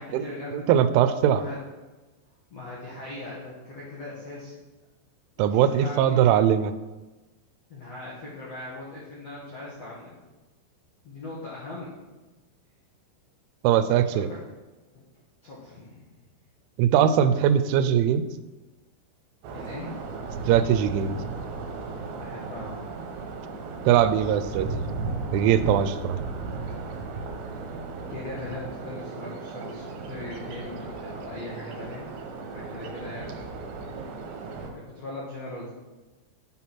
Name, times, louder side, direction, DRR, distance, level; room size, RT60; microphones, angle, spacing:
voice 1, 0.0-0.7 1.2-1.6 2.5-4.6 5.4-6.4 7.7-10.2 11.0-12.0 13.9-14.4 14.9-15.0 15.4-16.1 19.5-19.9 22.1-22.9 28.1-32.1 32.5-33.3 34.7-35.7, left 2 dB, 55° left, -6 dB, 1.8 m, -39 dB
voice 2, 0.5-1.4 5.4-6.7 13.6-14.3 16.8-18.3 20.5-21.2 23.9-24.9 25.3-26.2, right 9 dB, 90° right, 11 dB, 3.0 m, -21 dB
sound 1, 19.4-34.7, right 4 dB, 75° right, 3.2 m, -35 dB
9.7 x 5.7 x 6.0 m, 1.2 s
omnidirectional pair, 5.4 m